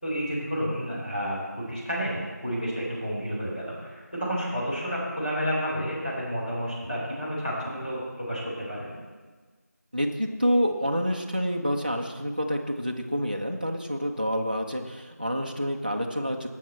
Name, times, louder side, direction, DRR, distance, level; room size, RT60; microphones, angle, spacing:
voice 1, 0.0-8.9, equal, 30° left, -8 dB, 3.8 m, -30 dB
voice 2, 9.9-16.5, equal, 30° right, 2 dB, 0.7 m, -28 dB
18.0 x 6.5 x 4.4 m, 1.4 s
figure-of-eight pair, 180°, 9 cm